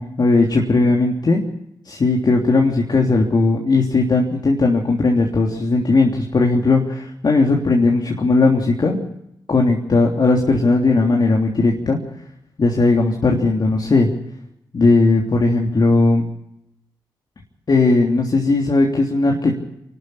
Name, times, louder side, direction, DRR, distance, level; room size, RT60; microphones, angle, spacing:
voice 1, 0.0-1.4 1.8-9.0 9.5-12.0 12.6-14.1 14.7-16.2 17.7-19.6, left 3 dB, 55° left, 0 dB, 3.3 m, -17 dB
25.0 x 13.0 x 8.6 m, 0.81 s
supercardioid pair, 45°, 9 cm